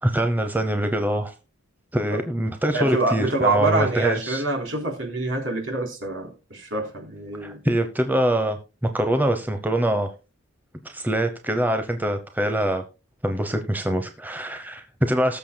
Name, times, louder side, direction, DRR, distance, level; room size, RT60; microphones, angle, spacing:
voice 1, 0.0-1.3 1.9-4.4 7.4-8.6 8.9-10.1 10.8-12.8 13.2-15.4, right 1 dB, 10° right, 0.8 m, -24 dB
voice 2, 2.7-7.6, right 2 dB, 65° right, 3.6 m, -26 dB
19.0 x 7.0 x 2.2 m
head